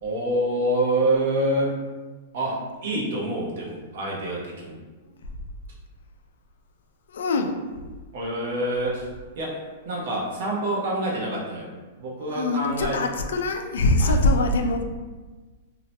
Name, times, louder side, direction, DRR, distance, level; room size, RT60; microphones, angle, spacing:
voice 1, 0.0-1.8 2.3-4.8 8.1-9.0 9.4-11.7 12.0-13.0 14.0-14.1, right 1 dB, 55° right, -4 dB, 0.8 m, -26 dB
voice 2, 7.1-7.6 12.3-14.8, left 2 dB, 85° left, 5 dB, 0.3 m, -23 dB
2.8 x 2.1 x 2.8 m, 1.3 s
supercardioid pair, 165°, 0 cm